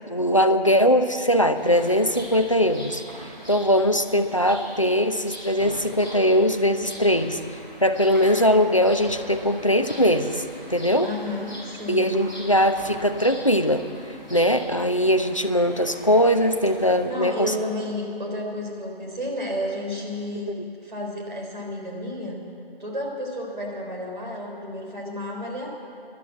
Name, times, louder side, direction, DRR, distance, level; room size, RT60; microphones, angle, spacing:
voice 1, 0.1-3.0 3.5-7.4 7.8-10.4 10.7-11.1 11.9-13.9 14.3-17.5, equal, 35° left, 7 dB, 0.6 m, -21 dB
sound 1, 1.5-17.1, equal, 10° right, 3.7 m, -42 dB
voice 2, 11.0-12.1 17.1-20.5 20.8-22.4 22.8-25.7, left 1 dB, 50° right, 0 dB, 4.1 m, -31 dB
13.0 x 12.0 x 8.5 m, 2.5 s
figure-of-eight pair, 180°, 30 cm